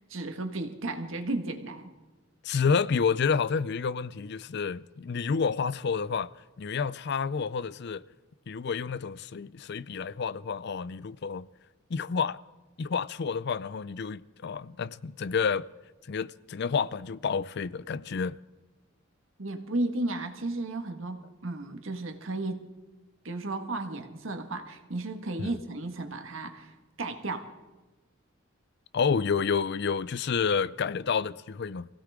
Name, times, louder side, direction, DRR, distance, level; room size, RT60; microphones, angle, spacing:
voice 1, 0.0-1.9 19.4-22.7 23.2-27.5, right 2 dB, 75° right, 1.7 m, -34 dB
voice 2, 2.4-6.3 6.6-8.0 8.5-11.5 11.9-12.4 12.8-15.6 16.0-18.4 25.4-25.5 28.9-31.9, left 5 dB, 55° left, 0.5 m, -29 dB
23.5 x 16.5 x 3.7 m
head